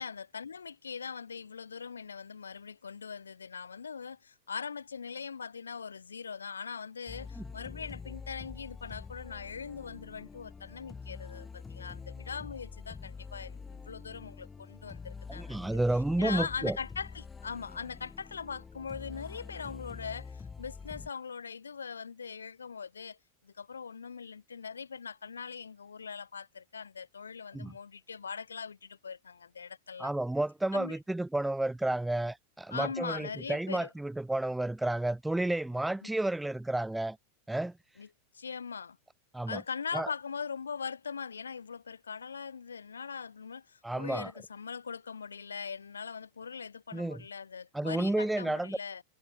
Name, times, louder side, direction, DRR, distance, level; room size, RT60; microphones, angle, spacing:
voice 1, 0.0-15.8 16.2-23.2 23.4-30.1 30.7-31.0 32.7-33.9 36.0-36.1 38.0-38.1 38.3-39.0 39.5-49.0, left 6 dB, 70° left, 1.4 m, -41 dB
sound 1, 7.1-21.1, left 5 dB, 15° left, 1.6 m, -46 dB
voice 2, 15.3-16.8 27.5-27.7 30.0-37.2 37.5-37.7 39.3-39.6 39.9-40.1 43.8-44.3 46.9-47.2 47.7-48.8, right 1 dB, 5° right, 0.5 m, -31 dB
figure-of-eight pair, 90°, 0 cm